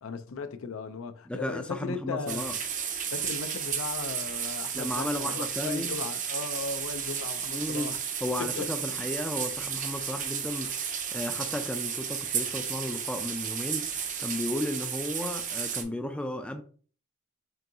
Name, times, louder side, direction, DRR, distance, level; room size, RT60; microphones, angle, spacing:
voice 1, 0.0-2.5 3.1-8.0 8.4-8.7, left 5 dB, 75° left, 0.4 m, -37 dB
voice 2, 1.3-2.5 4.7-6.0 7.5-7.9 8.2-16.6, left 1 dB, 5° left, 0.3 m, -34 dB
sound 1, 2.3-15.8, right 7 dB, 40° right, 0.6 m, -33 dB
5.3 x 2.7 x 2.7 m
head